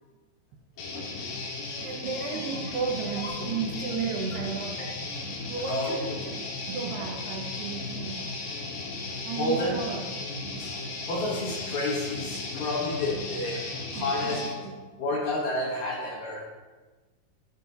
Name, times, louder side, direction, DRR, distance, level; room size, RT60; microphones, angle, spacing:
Guitar, 0.8-14.5, left 3 dB, 80° left, 3.6 m, -36 dB
voice 1, 0.9-1.3 2.3-2.4 5.4-6.3 9.4-9.8 10.6-14.7 15.0-16.5, left 1 dB, 65° left, -2 dB, 2.0 m, -31 dB
voice 2, 1.8-4.9 5.5-6.3 6.7-8.3 9.3-10.1 14.0-14.1, right 5 dB, 85° right, 1 dB, 3.3 m, -33 dB
13.5 x 9.4 x 2.8 m, 1.3 s
omnidirectional pair, 4.6 m